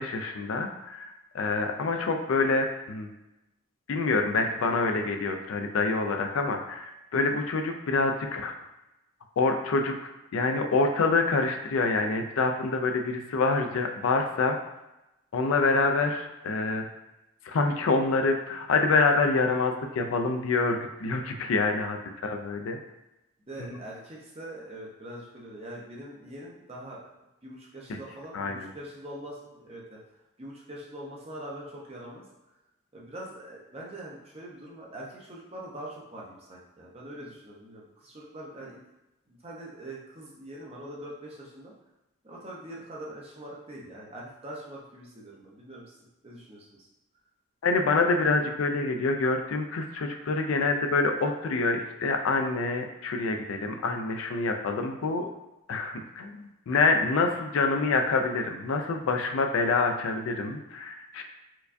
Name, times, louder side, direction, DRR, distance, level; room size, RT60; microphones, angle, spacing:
voice 1, 0.0-3.1 3.9-8.5 9.4-10.0 10.3-14.6 15.3-16.9 17.4-22.0 22.2-22.8 23.6-23.8 28.3-28.7 47.6-55.3 55.7-61.2, left 3 dB, 75° left, 5 dB, 0.4 m, -26 dB
voice 2, 23.5-27.0 27.4-30.0 30.4-32.2 32.9-38.8 39.3-41.7 42.2-46.0 46.2-46.9, right 1 dB, 30° right, -4 dB, 0.6 m, -43 dB
4.5 x 2.2 x 2.5 m, 0.96 s
head